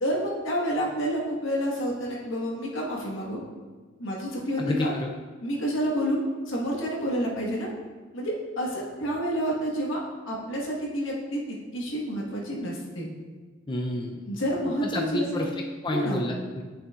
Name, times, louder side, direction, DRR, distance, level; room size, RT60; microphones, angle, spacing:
voice 1, 0.0-3.4 4.0-4.9 5.4-7.7 8.1-13.1 14.2-15.5 15.9-16.2, equal, 80° left, -2 dB, 1.5 m, -29 dB
voice 2, 4.6-5.1 13.7-14.3 14.9-15.5 15.8-16.6, left 1 dB, 25° left, 0 dB, 0.5 m, -29 dB
9.3 x 5.7 x 2.4 m, 1.4 s
head